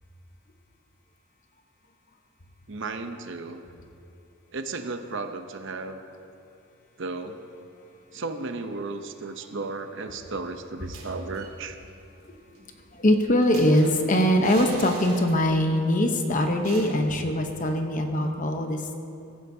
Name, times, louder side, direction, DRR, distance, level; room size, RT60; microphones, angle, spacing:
voice 1, 2.7-3.6 4.5-6.0 7.0-7.4 8.1-11.8, right 3 dB, 55° right, 7 dB, 0.7 m, -34 dB
sound 1, 10.8-11.6 11.9-12.0 12.3-15.7 16.0-16.1 16.6-17.4, right 3 dB, 85° right, 2.2 m, -43 dB
voice 2, 13.0-18.8, left 1 dB, 35° left, 5 dB, 0.9 m, -22 dB
15.0 x 15.0 x 2.8 m, 2.7 s
head